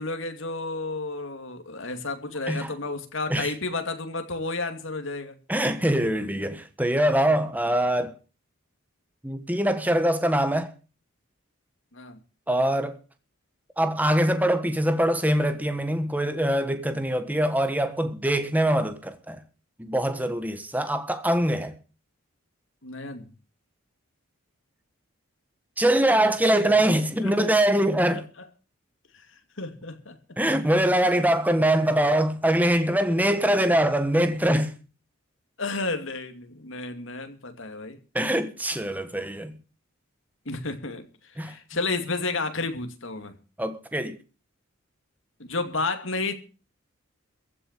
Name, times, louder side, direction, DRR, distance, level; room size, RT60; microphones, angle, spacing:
voice 1, 0.0-5.3 11.9-12.2 22.8-23.3 27.2-27.5 29.1-29.3 29.6-30.2 33.2-33.5 35.6-38.0 40.5-43.3 45.4-46.3, left 3 dB, 65° left, 2.5 m, -32 dB
voice 2, 5.5-8.1 9.2-10.7 12.5-13.0 13.8-19.4 19.8-21.8 25.8-28.3 30.4-34.8 38.1-39.6 41.4-41.5 43.6-44.2, right 1 dB, 10° right, 1.2 m, -23 dB
15.0 x 6.9 x 8.9 m
head